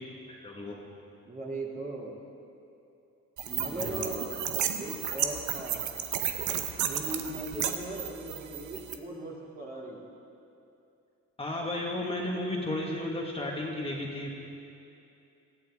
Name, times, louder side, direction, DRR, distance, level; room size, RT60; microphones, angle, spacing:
voice 1, 0.3-0.8 3.7-4.3 11.4-14.3, left 1 dB, 20° left, -2 dB, 1.8 m, -34 dB
voice 2, 1.3-2.2 3.4-4.3 4.8-6.0 6.8-10.0, right 2 dB, 30° right, -3 dB, 2.7 m, -39 dB
sound 1, 3.4-8.9, right 9 dB, 75° right, 0.9 m, -33 dB
18.0 x 14.0 x 3.6 m, 2.7 s
cardioid pair, 90°, 30 cm